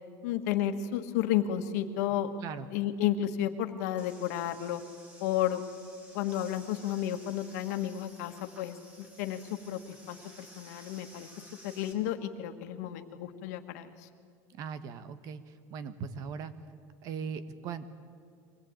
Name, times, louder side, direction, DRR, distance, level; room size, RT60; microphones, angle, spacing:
voice 1, 0.2-2.3 2.7-4.8 5.2-5.6 6.1-8.8 9.2-11.3 11.6-14.1, left 11 dB, 90° left, 7 dB, 1.5 m, -32 dB
sound 1, 4.0-11.9, equal, 20° right, 3.0 m, -54 dB
voice 2, 14.5-15.4 15.7-16.5 17.0-17.9, right 6 dB, 45° right, 12 dB, 1.2 m, -39 dB
24.0 x 18.0 x 8.9 m, 2.2 s
cardioid pair, 165°, 8 cm